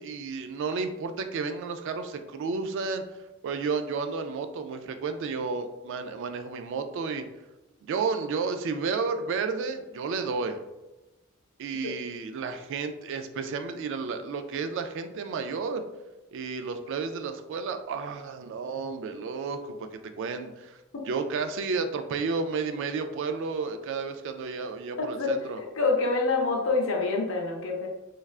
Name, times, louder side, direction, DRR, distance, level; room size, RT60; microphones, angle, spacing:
voice 1, 0.0-3.0 3.4-7.2 7.8-10.6 11.6-15.8 16.3-20.8 21.1-25.6, right 4 dB, 60° right, 7 dB, 0.3 m, -32 dB
voice 2, 25.0-27.9, left 3 dB, 65° left, 1 dB, 0.6 m, -27 dB
3.2 x 2.3 x 2.3 m, 1.1 s
head